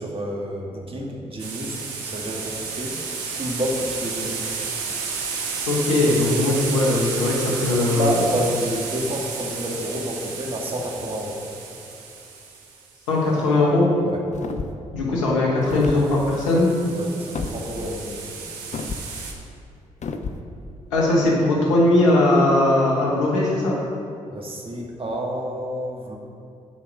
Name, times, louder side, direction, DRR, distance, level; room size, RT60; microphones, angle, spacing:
voice 1, 0.0-3.0 3.3-4.4 7.7-11.4 14.0-14.3 16.9-18.5 24.3-26.2, equal, 35° right, 0 dB, 2.0 m, -29 dB
sound 1, 1.4-12.9 15.8-19.3, right 5 dB, 85° right, 0.9 m, -32 dB
voice 2, 5.7-8.2 13.1-13.9 14.9-16.7 20.9-23.8, left 2 dB, 90° left, -4 dB, 1.3 m, -19 dB
sound 2, 14.3-14.9 15.6-16.0 17.3-17.6 18.7-19.1 20.0-20.4, left 4 dB, 50° left, 0.8 m, -30 dB
10.5 x 4.6 x 6.1 m, 2.5 s
hypercardioid pair, 45°, 16 cm